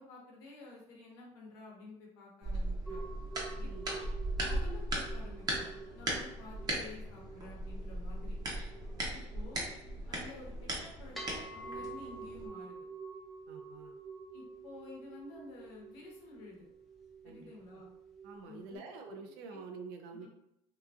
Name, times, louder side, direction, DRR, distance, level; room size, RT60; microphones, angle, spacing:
voice 1, 0.0-3.0 3.6-4.0 4.5-5.7 5.9-8.4 9.1-9.7 10.1-12.8 14.3-16.7 17.2-17.9 18.4-18.8 19.5-19.6 20.1-20.3, left 2 dB, 90° left, -2 dB, 0.9 m, -51 dB
sound 1, 2.4-12.5, right 1 dB, 30° right, 0.8 m, -38 dB
sound 2, 2.9-18.8, right 4 dB, ahead, 0.6 m, -49 dB
voice 2, 3.6-3.9 13.5-14.0 17.2-17.5 18.2-20.3, right 4 dB, 85° right, 4 dB, 0.5 m, -47 dB
2.8 x 2.5 x 2.4 m, 0.79 s
supercardioid pair, 110°, 12 cm